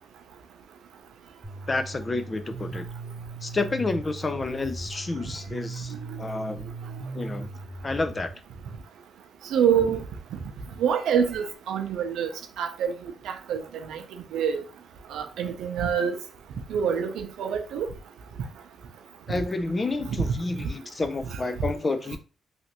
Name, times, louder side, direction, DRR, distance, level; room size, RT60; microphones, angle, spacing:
sound 1, 1.4-8.3, right 3 dB, 25° right, 0.6 m, -38 dB
voice 1, 1.7-2.9 3.4-6.7 7.1-7.5 7.8-8.3 19.3-22.2, left 3 dB, 30° left, 0.4 m, -29 dB
voice 2, 9.5-10.0 10.8-12.3 12.6-12.9 13.2-13.6 13.9-14.0 14.3-14.6 15.1-16.2 16.7-17.9 20.1-20.2, right 7 dB, 85° right, 0.6 m, -25 dB
3.2 x 2.5 x 2.9 m
cardioid pair, 90°, 0 cm